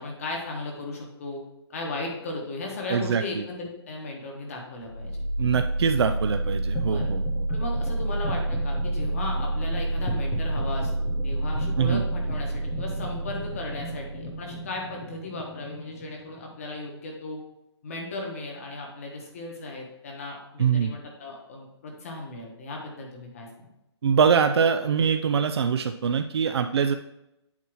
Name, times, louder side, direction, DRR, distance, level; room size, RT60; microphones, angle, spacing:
voice 1, 0.0-1.4 1.7-5.1 6.9-7.1 7.5-17.4 17.8-23.7, left 2 dB, 30° left, 0 dB, 1.3 m, -36 dB
voice 2, 2.9-3.4 5.4-7.2 11.8-12.0 20.6-20.9 24.0-26.9, right 6 dB, 65° right, 7 dB, 0.4 m, -23 dB
sound 1, 4.8-16.8, right 1 dB, 5° left, 0.4 m, -29 dB
8.3 x 2.9 x 6.1 m, 0.86 s
hypercardioid pair, 175°, 15 cm